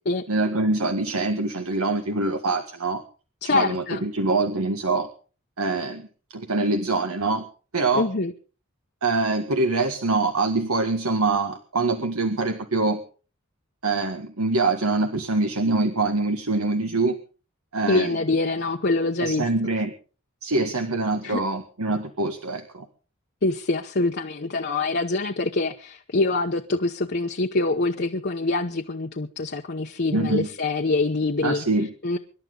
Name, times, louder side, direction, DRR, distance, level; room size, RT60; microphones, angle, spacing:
voice 1, 0.3-3.0 3.4-5.1 5.6-7.5 7.7-8.1 9.0-13.0 13.8-17.2 17.7-18.1 19.2-19.9 20.4-22.9 30.1-30.5 31.4-31.9, right 3 dB, 85° right, 1.6 m, -24 dB
voice 2, 3.4-4.0 7.9-8.3 17.9-19.5 21.2-21.4 23.4-31.6 32.0-32.2, left 3 dB, 50° left, 0.9 m, -25 dB
25.5 x 11.5 x 3.9 m
head